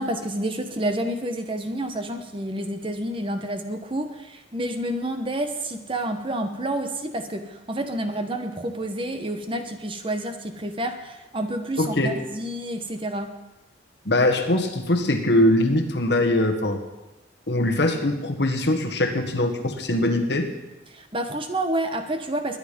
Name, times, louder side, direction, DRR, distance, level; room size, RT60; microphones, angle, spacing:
voice 1, 0.0-13.3 20.9-22.6, right 1 dB, 25° right, 7 dB, 1.1 m, -29 dB
voice 2, 11.8-12.2 14.1-16.8 17.5-20.5, left 1 dB, 60° left, 4 dB, 1.7 m, -22 dB
21.5 x 10.0 x 5.3 m, 1.1 s
head